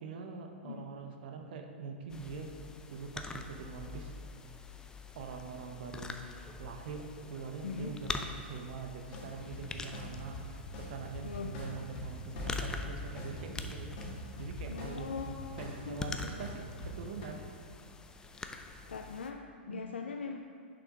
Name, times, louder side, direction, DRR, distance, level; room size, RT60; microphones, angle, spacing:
voice 1, 0.0-2.5 2.9-4.1 5.1-6.2 6.6-15.2 15.6-17.5 19.6-19.8, right 5 dB, 55° right, 4 dB, 0.8 m, -44 dB
sound 1, 2.1-19.3, left 3 dB, 10° left, 0.4 m, -45 dB
voice 2, 7.6-8.0 11.2-11.5 14.7-16.1 18.9-20.4, left 5 dB, 80° left, 4 dB, 0.4 m, -41 dB
sound 2, 9.1-17.3, equal, 50° left, 1.7 m, -43 dB
6.8 x 5.6 x 5.0 m, 2.2 s
figure-of-eight pair, 110°, 6 cm